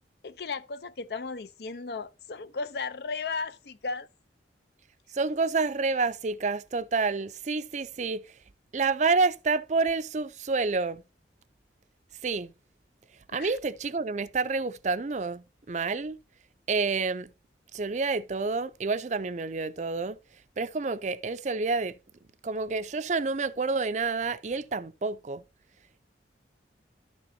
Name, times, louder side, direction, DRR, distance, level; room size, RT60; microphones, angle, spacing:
voice 1, 0.2-4.1 13.3-13.5, left 4 dB, 60° left, 0.6 m, -35 dB
voice 2, 5.1-8.2 8.7-11.0 12.2-12.5 13.3-16.2 16.7-17.3 17.7-20.2 20.6-21.9 22.4-25.4, right 4 dB, 40° right, 0.4 m, -28 dB
12.5 x 6.8 x 2.7 m
head